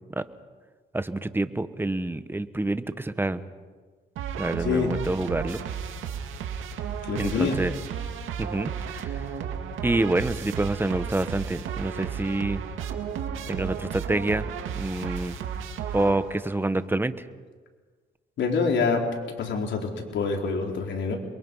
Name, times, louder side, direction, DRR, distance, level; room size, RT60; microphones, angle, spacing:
voice 1, 0.9-3.4 4.4-5.6 7.2-7.7 8.4-9.3 9.8-12.6 13.5-14.5 14.7-15.4 15.9-17.3, right 2 dB, 10° right, 12 dB, 1.2 m, -27 dB
sound 1, 4.2-16.6, right 7 dB, 85° right, 2.2 m, -33 dB
voice 2, 4.6-4.9 7.1-7.6 18.4-19.1 19.4-21.2, left 5 dB, 65° left, 1 dB, 4.3 m, -26 dB
29.5 x 22.5 x 5.6 m, 1.5 s
cardioid pair, 90°, 20 cm